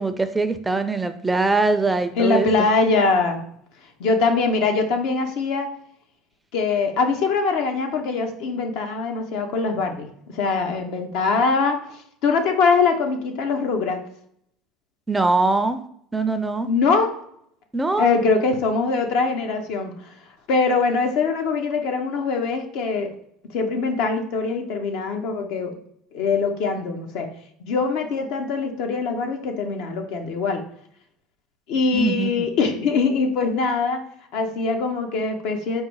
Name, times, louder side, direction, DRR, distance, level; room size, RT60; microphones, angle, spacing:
voice 1, 0.0-2.5 15.1-15.8 16.1-16.7 17.7-18.1 31.9-32.5, right 3 dB, 15° right, 10 dB, 0.4 m, -22 dB
voice 2, 2.2-3.4 4.0-5.7 6.5-11.8 12.2-14.0 16.6-17.1 18.0-20.0 20.5-23.1 23.5-25.7 26.1-27.3 27.7-30.6 31.7-34.1 34.3-35.8, left 4 dB, 70° left, 5 dB, 0.8 m, -22 dB
4.8 x 2.1 x 4.6 m, 0.69 s
supercardioid pair, 95°, 0 cm